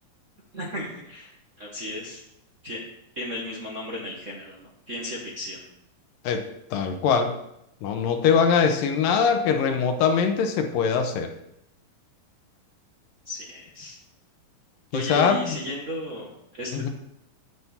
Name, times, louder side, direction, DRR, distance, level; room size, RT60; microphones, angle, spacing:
voice 1, 0.5-1.3 1.6-2.2 2.6-2.8 3.1-5.6 13.2-14.0 14.9-16.9, left 1 dB, 55° right, -3 dB, 0.8 m, -34 dB
voice 2, 6.2-7.4 7.8-11.3 14.9-15.5 16.7-16.9, left 6 dB, 80° left, 6 dB, 2.6 m, -22 dB
9.4 x 6.2 x 7.1 m, 0.80 s
omnidirectional pair, 4.0 m